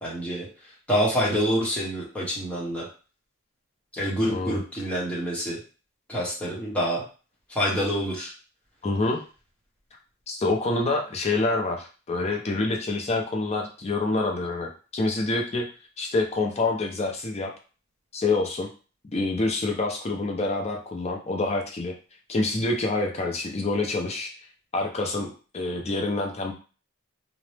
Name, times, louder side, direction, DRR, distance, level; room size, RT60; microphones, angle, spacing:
voice 1, 0.0-0.5 0.9-2.9 4.0-5.6 6.1-7.0 7.5-8.3, equal, 5° left, -6 dB, 0.9 m, -26 dB
voice 2, 8.8-9.2 10.3-15.7 16.0-17.5 18.1-18.7 19.1-21.9 22.3-24.3 24.7-25.3 25.5-26.5, left 2 dB, 30° left, 1 dB, 0.4 m, -26 dB
2.8 x 2.0 x 3.2 m, 0.36 s
head